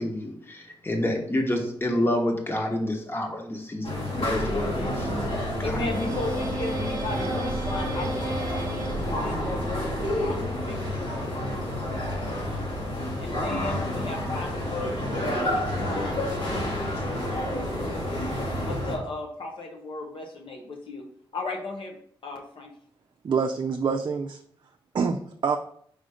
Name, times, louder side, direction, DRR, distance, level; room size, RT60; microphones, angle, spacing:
voice 1, 0.0-5.3 5.6-5.8, left 1 dB, 25° left, 2 dB, 1.3 m, -28 dB
sound 1, 3.8-18.9, left 1 dB, 85° left, 2.8 m, -29 dB
sound 2, 4.3-10.5, right 2 dB, 35° right, 0.8 m, -34 dB
voice 2, 5.6-11.1 13.2-16.2 18.6-21.0 21.3-22.7, left 2 dB, 65° left, 1 dB, 0.9 m, -35 dB
voice 3, 23.2-24.4 24.9-25.6, right 5 dB, 55° right, 4 dB, 0.5 m, -26 dB
5.0 x 3.8 x 5.0 m, 0.62 s
wide cardioid pair, 95°, 9 cm